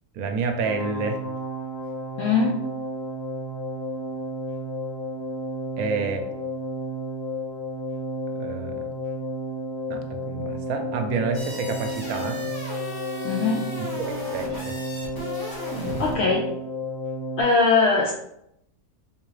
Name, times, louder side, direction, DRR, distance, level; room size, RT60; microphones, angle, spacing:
voice 1, 0.1-1.2 5.8-6.3 8.3-8.9 9.9-12.4 14.0-14.8, right 4 dB, 75° right, 5 dB, 1.0 m, -29 dB
sound 1, 0.6-17.4, equal, 85° left, 1.3 m, -32 dB
voice 2, 2.2-2.5 13.2-13.6 16.0-16.4 17.4-18.1, left 4 dB, 70° left, -1 dB, 0.6 m, -20 dB
sound 2, 11.3-16.2, equal, 20° left, 0.6 m, -36 dB
3.7 x 3.0 x 3.2 m, 0.78 s
omnidirectional pair, 1.6 m